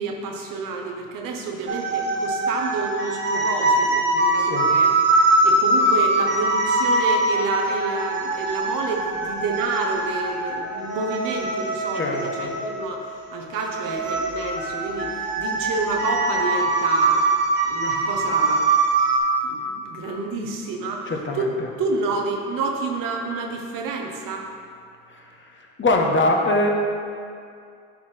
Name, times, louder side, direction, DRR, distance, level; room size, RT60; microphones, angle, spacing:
voice 1, 0.0-5.0 5.4-17.3 17.7-18.7 19.4-24.5, right 3 dB, 60° right, 2 dB, 1.0 m, -29 dB
sound 1, 1.7-19.2, right 2 dB, 30° right, 1.5 m, -22 dB
voice 2, 4.4-4.7 11.9-12.5 21.1-21.5 25.8-26.7, left 2 dB, 30° left, 2 dB, 1.0 m, -22 dB
10.5 x 4.2 x 3.3 m, 2.3 s
hypercardioid pair, 65°, 36 cm